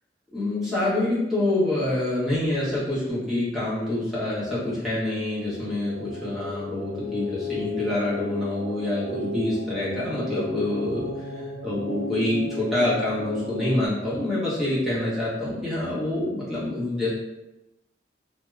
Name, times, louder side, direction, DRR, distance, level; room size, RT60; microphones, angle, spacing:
voice 1, 0.3-17.1, left 1 dB, ahead, -10 dB, 0.9 m, -26 dB
sound 1, 4.5-13.9, left 2 dB, 70° left, 0.7 m, -35 dB
2.3 x 2.0 x 3.1 m, 0.93 s
head